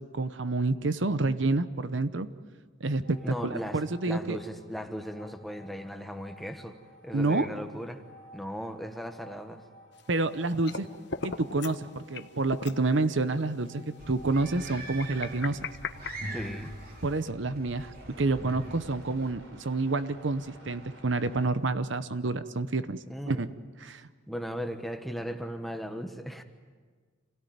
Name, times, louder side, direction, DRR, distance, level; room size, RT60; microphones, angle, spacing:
voice 1, 0.1-2.3 2.8-4.4 7.1-7.5 10.1-10.9 11.2-15.7 17.0-23.0 23.3-23.5 23.8-24.0, right 3 dB, 65° right, 12 dB, 0.9 m, -28 dB
sound 1, 3.0-21.5, right 1 dB, 85° right, 4.6 m, -55 dB
voice 2, 3.2-3.8 4.1-6.8 7.0-8.0 8.3-9.6 16.3-16.7 23.1-23.4 24.3-26.4, equal, ahead, 6 dB, 1.2 m, -37 dB
sound 2, 10.0-10.8 11.1-11.8 12.1-12.2 12.5-12.8 13.4-13.5 14.8-16.8, left 4 dB, 60° left, 1.0 m, -38 dB
sound 3, 14.0-19.3, right 1 dB, 50° right, 3.1 m, -42 dB
27.5 x 17.0 x 9.4 m, 1.5 s
head